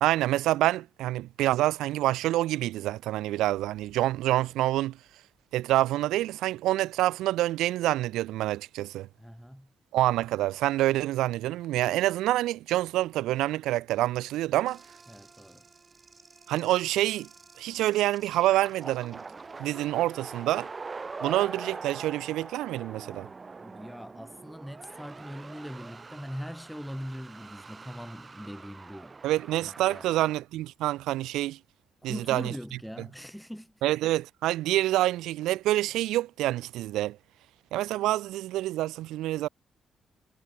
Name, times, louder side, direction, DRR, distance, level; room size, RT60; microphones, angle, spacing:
voice 1, 0.0-5.0 5.5-9.1 9.9-14.8 16.5-17.3 17.6-19.2 19.6-20.7 21.2-23.3 29.2-31.6 32.0-32.5 33.8-37.2 37.7-39.5, right 15 dB, 85° right, 0.6 m, -27 dB
sound 1, 3.3-5.9, left 9 dB, 70° left, 5.0 m, -65 dB
voice 2, 9.2-9.7 15.1-15.6 23.6-29.2 29.6-30.3 32.0-33.8, equal, ahead, 3.1 m, -41 dB
sound 2, 14.7-30.4, right 4 dB, 35° right, 0.8 m, -44 dB
supercardioid pair, 55°, 0 cm